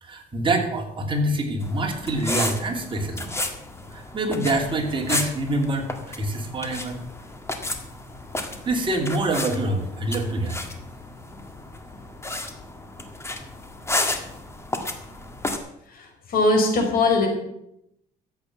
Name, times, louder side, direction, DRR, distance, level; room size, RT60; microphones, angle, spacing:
voice 1, 0.0-3.3 3.9-7.0 8.6-10.6, right 1 dB, 30° right, 1 dB, 3.2 m, -25 dB
sound 1, 1.6-15.6, left 2 dB, 15° left, 1.8 m, -32 dB
voice 2, 15.9-17.3, left 2 dB, 60° left, 3 dB, 4.6 m, -21 dB
13.5 x 8.2 x 7.4 m, 0.79 s
cardioid pair, 110°, 17 cm